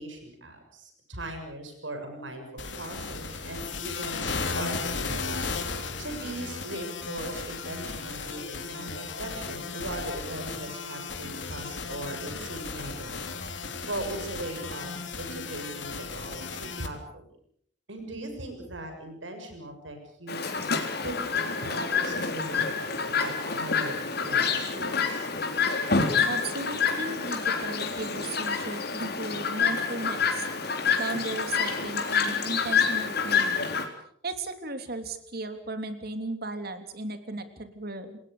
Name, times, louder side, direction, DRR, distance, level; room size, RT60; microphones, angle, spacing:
voice 1, 0.0-5.7 6.0-13.4 13.9-17.3 17.9-20.7 21.0-25.3, right 1 dB, 85° right, 6 dB, 7.1 m, -39 dB
sound 1, 2.6-16.9, left 4 dB, 75° left, 3.4 m, -35 dB
Chirp tweet, 20.3-33.9, left 5 dB, 55° left, 3.9 m, -27 dB
voice 2, 26.3-30.5 31.0-33.7 34.2-38.2, right 2 dB, 55° right, 8 dB, 3.2 m, -36 dB
28.5 x 20.0 x 6.8 m, 0.65 s
head